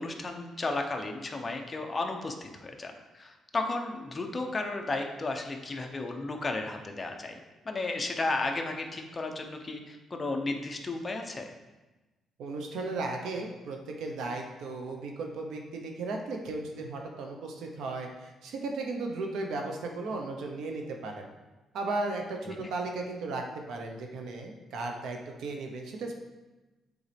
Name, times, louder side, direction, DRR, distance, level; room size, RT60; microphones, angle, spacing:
voice 1, 0.0-7.4 7.6-11.5 22.5-22.7, left 2 dB, 25° left, 3 dB, 0.8 m, -34 dB
voice 2, 12.4-21.3 21.7-26.2, right 3 dB, 80° right, 3 dB, 0.9 m, -35 dB
7.8 x 4.0 x 3.5 m, 1.1 s
cardioid pair, 110°, 0 cm